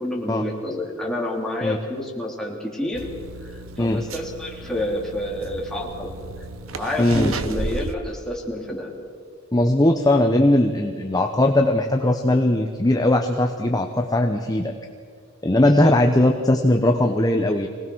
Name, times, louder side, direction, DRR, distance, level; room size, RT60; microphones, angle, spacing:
voice 1, 0.0-3.0 3.4-6.2 6.7-8.9 15.6-15.9, left 1 dB, 5° left, -2 dB, 3.1 m, -29 dB
sound 1, 2.9-8.0, right 3 dB, 80° right, 1.0 m, -34 dB
voice 2, 7.0-7.3 9.5-14.7 15.4-17.7, left 1 dB, 20° left, 4 dB, 0.9 m, -19 dB
24.0 x 18.5 x 6.3 m, 2.1 s
head